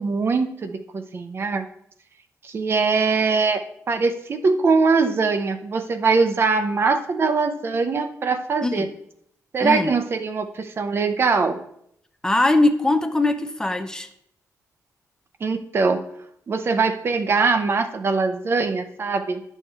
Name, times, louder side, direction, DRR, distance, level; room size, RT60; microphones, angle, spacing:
voice 1, 0.0-1.7 2.4-8.9 9.5-11.6 15.4-16.0 16.5-19.4, right 4 dB, 40° right, 8 dB, 0.6 m, -22 dB
voice 2, 9.6-9.9 12.2-14.1, left 2 dB, 10° left, 7 dB, 0.5 m, -21 dB
10.5 x 6.4 x 3.3 m, 0.72 s
cardioid pair, 135°, 6 cm